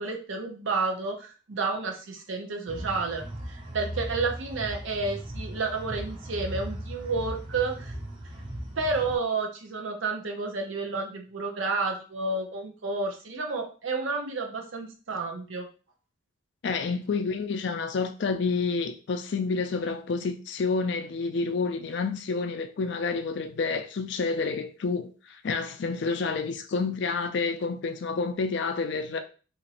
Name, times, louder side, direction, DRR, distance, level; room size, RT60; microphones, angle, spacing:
voice 1, 0.0-7.9 8.8-15.7, right 3 dB, 70° right, 0.6 m, -31 dB
sound 1, 2.7-9.2, right 1 dB, 25° right, 0.5 m, -38 dB
voice 2, 16.6-29.2, left 4 dB, 55° left, 0.4 m, -29 dB
3.0 x 2.5 x 2.8 m
head